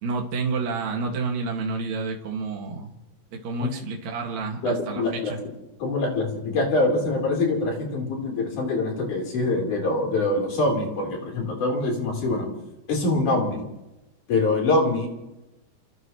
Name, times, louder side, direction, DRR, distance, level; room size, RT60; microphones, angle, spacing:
voice 1, 0.0-2.9 3.3-5.4, right 4 dB, 60° right, 0 dB, 3.2 m, -29 dB
voice 2, 4.6-5.3 5.8-12.5 12.9-13.6 14.3-15.1, left 2 dB, 65° left, -1 dB, 5.4 m, -24 dB
28.5 x 16.0 x 3.2 m, 0.94 s
omnidirectional pair, 3.8 m